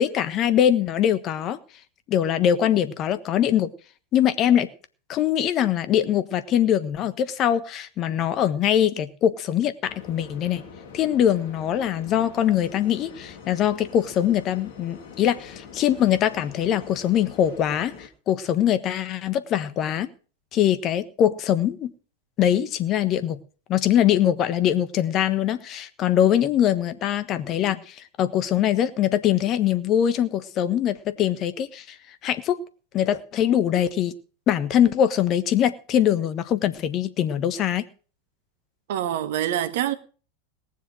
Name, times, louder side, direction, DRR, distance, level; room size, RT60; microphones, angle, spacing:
voice 1, 0.0-1.6 2.1-3.7 4.1-4.7 5.1-10.6 10.9-20.1 20.5-21.9 22.4-23.4 23.7-31.9 32.2-32.6 32.9-34.1 34.5-37.8, left 10 dB, 40° left, 1.3 m, -22 dB
sound 1, 9.8-18.1, left 6 dB, 55° left, 2.9 m, -44 dB
voice 2, 38.9-39.9, right 11 dB, 65° right, 1.3 m, -25 dB
18.5 x 7.4 x 6.3 m
figure-of-eight pair, 90°, 0 cm